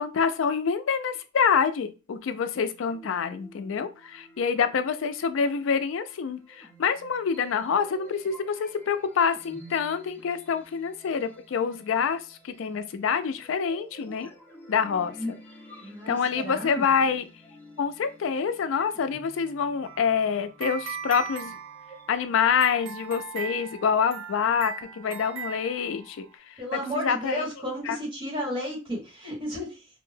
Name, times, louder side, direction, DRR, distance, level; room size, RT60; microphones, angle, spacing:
voice 1, 0.0-14.3 14.7-15.4 16.1-17.3 17.8-21.6 22.1-27.5 27.9-28.0, left 6 dB, 75° left, 11 dB, 0.4 m, -26 dB
sound 1, 2.7-22.6, left 1 dB, 10° left, 0.7 m, -48 dB
voice 2, 15.8-16.9 26.6-29.9, equal, 25° right, -3 dB, 1.2 m, -33 dB
sound 2, 19.8-26.4, right 6 dB, 85° right, 0.6 m, -39 dB
2.6 x 2.2 x 3.2 m, 0.31 s
head